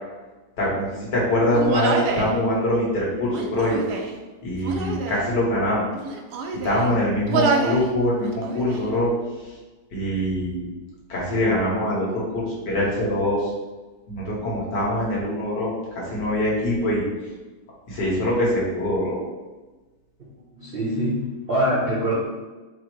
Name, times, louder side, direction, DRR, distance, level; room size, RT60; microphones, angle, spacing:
voice 1, 0.6-3.8 4.4-5.8 6.6-9.1 9.9-10.6 11.1-13.5 14.1-17.0 17.9-19.2, left 1 dB, 70° left, -5 dB, 1.8 m, -23 dB
Human voice, 1.5-2.3 3.2-4.2 4.6-5.3 5.9-6.9 7.3-7.9 8.2-8.9, right 4 dB, 75° right, 1.0 m, -27 dB
voice 2, 20.5-22.1, equal, 50° right, -8 dB, 0.7 m, -24 dB
4.6 x 2.1 x 4.5 m, 1.2 s
omnidirectional pair, 1.9 m